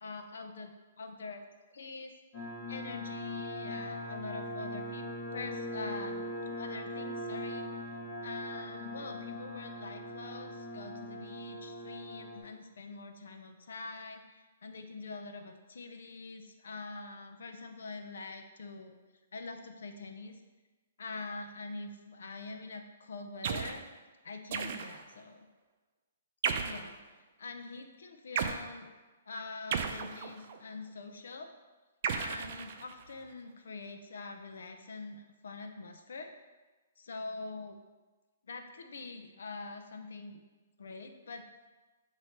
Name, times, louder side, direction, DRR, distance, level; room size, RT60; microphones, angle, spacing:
voice 1, 0.0-1.4 1.7-2.1 2.7-6.2 6.6-7.8 8.2-18.9 19.3-20.4 21.0-23.8 24.2-25.5 26.6-27.0 27.4-28.9 29.3-31.5 32.1-36.3 37.0-37.8 38.4-40.4 40.8-41.5, left 3 dB, 80° left, 5 dB, 0.7 m, -44 dB
sound 1, 2.3-12.4, left 1 dB, 35° left, 1.9 m, -40 dB
sound 2, 23.4-23.8 24.5-25.1 26.4-26.9 28.4-28.6 29.7-30.6 32.0-33.1, right 6 dB, 50° right, 0.5 m, -34 dB
7.7 x 2.9 x 4.5 m, 1.2 s
hypercardioid pair, 150°, 0 cm